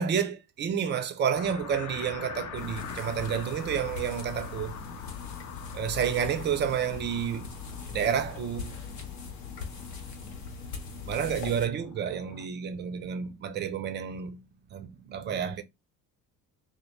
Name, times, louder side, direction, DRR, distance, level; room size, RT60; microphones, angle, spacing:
voice 1, 0.0-4.8 5.7-7.5 7.9-8.7 11.1-14.4 14.7-15.6, right 8 dB, 25° right, 0.3 m, -30 dB
sound 1, 1.3-12.4, left 7 dB, 40° left, 0.5 m, -44 dB
sound 2, 2.5-11.7, left 5 dB, 85° left, 0.7 m, -40 dB
2.1 x 2.0 x 2.9 m
figure-of-eight pair, 55°, 50 cm